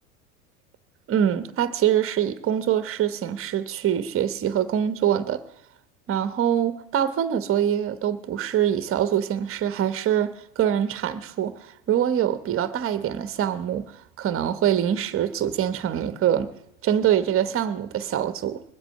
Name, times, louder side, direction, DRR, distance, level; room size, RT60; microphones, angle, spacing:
voice 1, 1.1-5.4 6.1-13.9 14.2-16.5 16.8-18.6, right 10 dB, 30° right, 1.1 m, -24 dB
21.0 x 8.1 x 6.6 m
hypercardioid pair, 85°, 43 cm